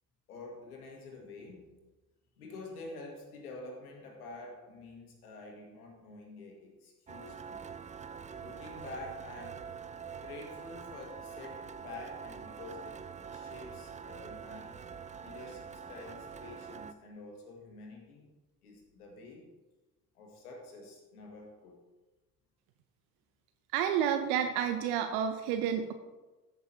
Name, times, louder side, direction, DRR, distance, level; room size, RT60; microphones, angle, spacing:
voice 1, 0.3-1.7 2.4-7.6 8.4-9.7 10.2-14.8 15.2-18.3 18.6-19.4 20.2-21.8, left 2 dB, 85° left, 0 dB, 2.0 m, -48 dB
sound 1, 7.1-16.9, right 7 dB, 15° right, 0.4 m, -45 dB
voice 2, 23.7-25.9, right 9 dB, 70° right, 7 dB, 0.7 m, -30 dB
14.0 x 6.2 x 2.8 m, 1.2 s
hypercardioid pair, 60°, 44 cm